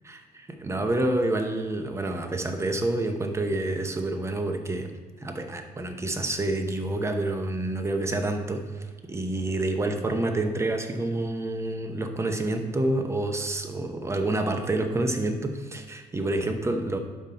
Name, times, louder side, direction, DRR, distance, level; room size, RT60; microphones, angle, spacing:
voice 1, 0.1-4.9 5.2-17.0, right 2 dB, 15° right, 6 dB, 0.8 m, -28 dB
11.0 x 4.0 x 4.2 m, 1.4 s
cardioid pair, 110°, 17 cm